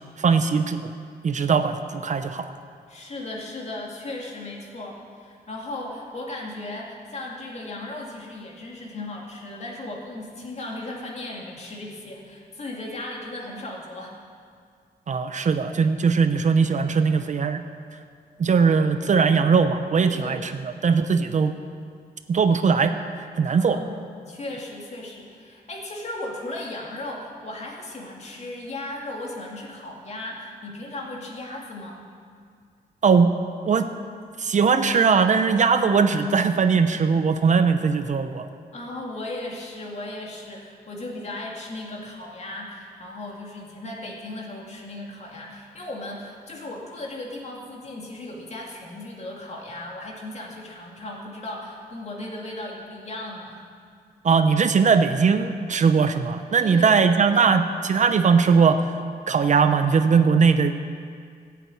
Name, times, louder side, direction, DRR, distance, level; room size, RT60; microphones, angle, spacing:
voice 1, 0.2-0.9 1.2-2.5 15.1-17.6 18.4-20.5 20.8-21.6 22.3-23.0 23.3-23.8 33.0-33.3 33.7-33.9 34.4-38.5 54.2-58.9 59.3-60.9, right 5 dB, 45° right, 9 dB, 0.7 m, -20 dB
voice 2, 2.9-14.2 20.1-20.5 23.5-32.0 38.7-53.7 56.6-57.7, left 2 dB, 40° left, -1 dB, 2.4 m, -36 dB
15.0 x 8.4 x 9.1 m, 2.2 s
wide cardioid pair, 165°, 17 cm